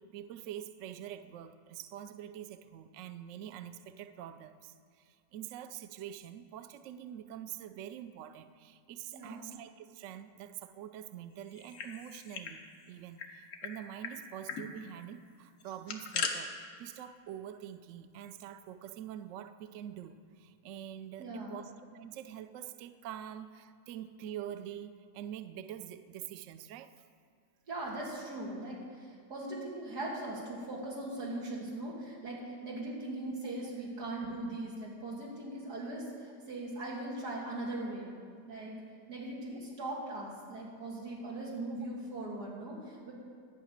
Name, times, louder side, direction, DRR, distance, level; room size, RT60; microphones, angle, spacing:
voice 1, 0.0-26.9, right 10 dB, 90° right, 11 dB, 0.6 m, -45 dB
voice 2, 9.1-9.5 21.2-21.6 27.7-38.1 38.5-38.8 39.1-43.1, right 2 dB, 60° right, -3 dB, 2.7 m, -40 dB
sound 1, 11.5-12.6 12.8-12.9 13.2-13.7 14.0-14.1 14.5-14.7 15.6-16.3, left 6 dB, 60° left, 1.3 m, -38 dB
12.0 x 5.8 x 8.6 m, 2.2 s
omnidirectional pair, 1.9 m